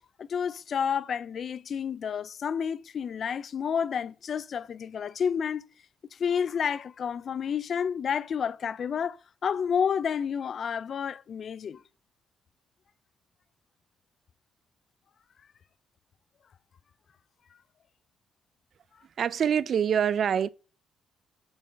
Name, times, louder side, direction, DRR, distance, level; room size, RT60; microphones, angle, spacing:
voice 1, 0.2-5.7 6.1-11.8, left 7 dB, 55° left, 0.4 m, -30 dB
voice 2, 19.2-20.5, right 8 dB, 55° right, 0.4 m, -25 dB
8.9 x 5.5 x 7.8 m
cardioid pair, 90°, 0 cm